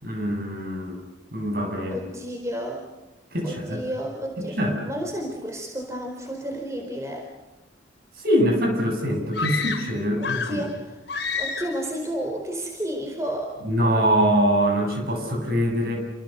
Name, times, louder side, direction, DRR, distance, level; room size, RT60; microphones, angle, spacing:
voice 1, 0.0-1.0 1.3-2.1 3.3-3.8 4.4-4.8 8.2-10.6 13.6-16.1, equal, 55° right, 3 dB, 7.9 m, -23 dB
voice 2, 1.9-2.9 3.4-4.6 4.8-7.3 10.2-11.0 11.3-13.6, right 1 dB, 15° right, 1 dB, 4.3 m, -31 dB
sound 1, 9.3-10.7 11.1-11.9, left 5 dB, 70° left, 3.4 m, -29 dB
29.5 x 26.5 x 6.9 m, 1.0 s
head